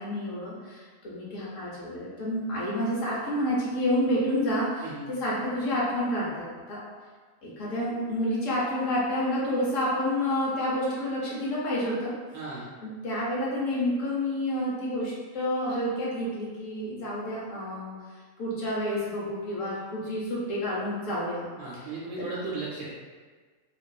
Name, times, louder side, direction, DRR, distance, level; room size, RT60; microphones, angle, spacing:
voice 1, 0.0-6.8 7.4-12.1 12.8-18.0 18.4-21.5, left 1 dB, 65° left, -6 dB, 1.0 m, -29 dB
voice 2, 12.3-12.7 21.6-22.9, right 3 dB, 80° right, -6 dB, 1.0 m, -36 dB
2.6 x 2.3 x 2.2 m, 1.5 s
omnidirectional pair, 1.6 m